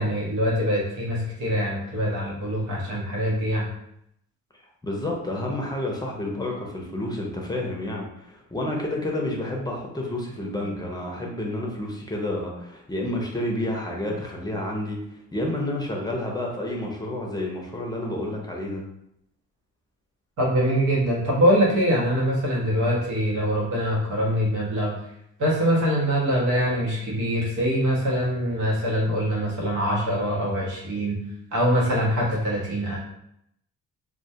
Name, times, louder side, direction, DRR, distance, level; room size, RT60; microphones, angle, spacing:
voice 1, 0.0-3.7 20.4-24.9 25.4-31.2 31.5-33.0, equal, 85° right, -4 dB, 0.9 m, -23 dB
voice 2, 4.8-15.0 15.3-18.8, left 1 dB, 15° left, -1 dB, 0.5 m, -30 dB
2.2 x 2.2 x 2.7 m, 0.76 s
cardioid pair, 90°, 30 cm